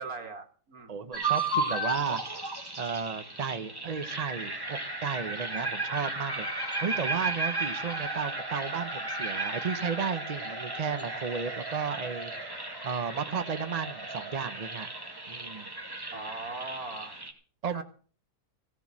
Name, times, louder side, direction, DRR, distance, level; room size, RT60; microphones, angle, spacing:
voice 1, 0.0-1.0 16.1-17.2 17.7-17.8, right 3 dB, 65° right, 7 dB, 2.3 m, -39 dB
voice 2, 0.9-2.2 2.8-12.6 12.8-14.9 15.3-15.7 17.6-17.8, right 6 dB, 35° right, 10 dB, 0.7 m, -33 dB
sound 1, 1.1-17.3, right 2 dB, 15° right, 2.1 m, -34 dB
16.5 x 7.5 x 7.4 m, 0.43 s
omnidirectional pair, 1.7 m